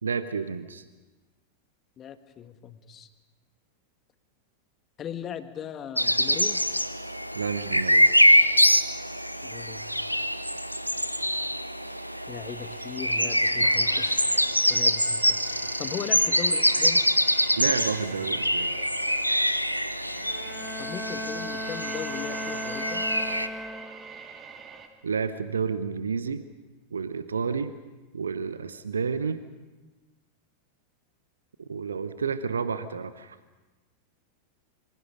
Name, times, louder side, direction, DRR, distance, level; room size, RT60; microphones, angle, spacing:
voice 1, 0.0-0.8 7.3-8.1 17.6-18.7 25.0-26.4 26.9-27.7 28.1-29.4 31.6-33.4, right 5 dB, 70° right, 13 dB, 0.9 m, -30 dB
voice 2, 2.0-3.1 5.0-6.6 9.4-9.8 12.3-14.3 14.7-15.4 15.8-17.0 20.8-23.1, left 8 dB, 30° left, 10 dB, 1.5 m, -38 dB
sound 1, 6.0-23.5, equal, 90° left, 0.8 m, -24 dB
sound 2, 11.8-24.9, right 6 dB, 25° right, 2.5 m, -45 dB
Bowed string instrument, 20.2-24.3, left 1 dB, 5° left, 0.9 m, -37 dB
27.0 x 25.0 x 5.2 m, 1.2 s
figure-of-eight pair, 90°, 0 cm